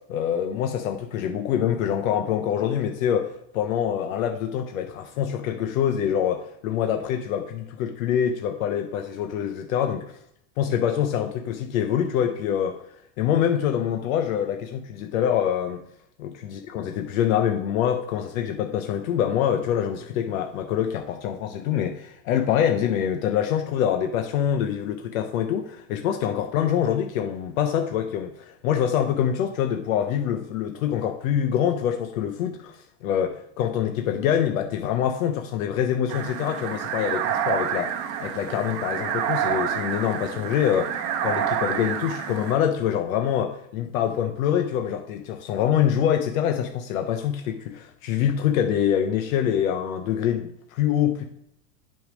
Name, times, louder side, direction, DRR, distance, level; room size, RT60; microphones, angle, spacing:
voice 1, 0.1-10.0 10.6-12.8 13.2-15.8 16.2-32.7 33.0-37.9 38.2-51.2, left 9 dB, 80° left, 5 dB, 0.7 m, -25 dB
sound 1, 36.1-42.5, right 9 dB, 55° right, 0.8 m, -28 dB
7.7 x 3.6 x 5.1 m, 0.75 s
supercardioid pair, 125°, 40 cm